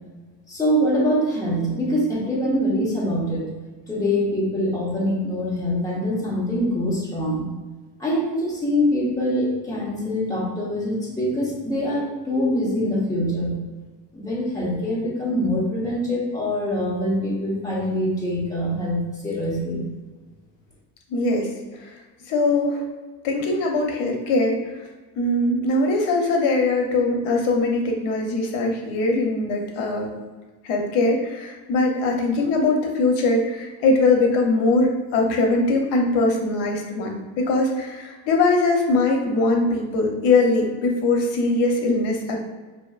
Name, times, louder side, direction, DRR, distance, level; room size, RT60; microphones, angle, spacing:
voice 1, 0.5-3.6 3.9-7.5 8.0-13.6 14.1-19.8, equal, 10° left, -6 dB, 1.1 m, -24 dB
voice 2, 21.1-22.0 22.3-22.8 23.2-24.8 25.2-30.1 30.6-42.4, left 2 dB, 80° left, 2 dB, 0.8 m, -21 dB
5.7 x 2.6 x 2.4 m, 1.3 s
cardioid pair, 140°, 42 cm